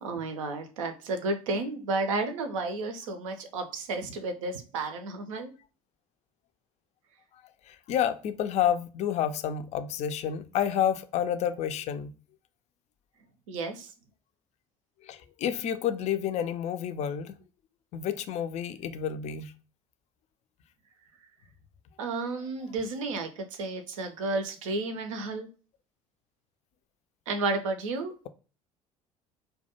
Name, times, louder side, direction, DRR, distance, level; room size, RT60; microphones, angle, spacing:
voice 1, 0.0-5.5 13.5-13.9 22.0-25.5 27.3-28.2, right 3 dB, 75° right, 0.5 m, -32 dB
voice 2, 7.7-12.1 15.0-17.3 17.9-19.5, left 9 dB, 40° left, 0.4 m, -29 dB
2.3 x 2.1 x 2.8 m
figure-of-eight pair, 60°, 17 cm